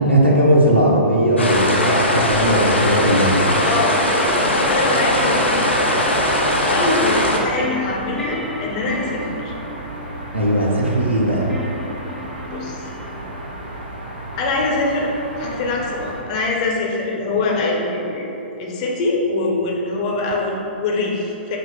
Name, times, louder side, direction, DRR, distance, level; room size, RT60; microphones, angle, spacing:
voice 1, 0.0-3.6 10.3-11.5, right 1 dB, 90° right, -4 dB, 0.7 m, -17 dB
sound 1, 1.4-7.4, left 1 dB, 85° left, 0.6 m, -19 dB
voice 2, 3.6-3.9 4.3-5.7 6.4-9.5 12.5-12.8 14.4-15.1 15.4-21.6, left 2 dB, 40° left, -1 dB, 0.7 m, -23 dB
sound 2, 3.8-13.5, left 2 dB, ahead, 0.3 m, -35 dB
sound 3, 5.1-16.2, right 1 dB, 60° right, 0.8 m, -34 dB
5.2 x 2.0 x 4.6 m, 2.8 s
figure-of-eight pair, 115°, 6 cm